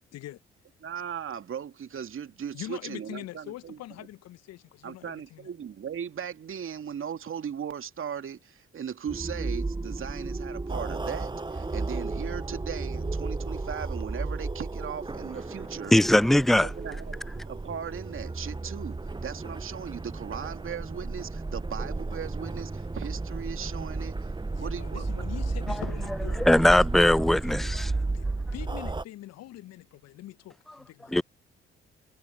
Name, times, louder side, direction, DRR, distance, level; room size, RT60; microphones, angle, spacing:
voice 1, 0.8-3.8 4.8-16.0 16.6-17.2 17.5-24.3 24.6-25.2, right 8 dB, 45° right, 2.6 m, -38 dB
voice 2, 2.5-5.5 24.5-26.7 26.9-27.9 28.1-31.2, left 14 dB, 60° left, 1.8 m, -43 dB
sound 1, 9.1-29.0, right 3 dB, 15° right, 1.4 m, -33 dB
voice 3, 15.9-16.7 26.4-27.9 31.1-31.2, left 1 dB, ahead, 0.4 m, -20 dB
figure-of-eight pair, 40°, 29 cm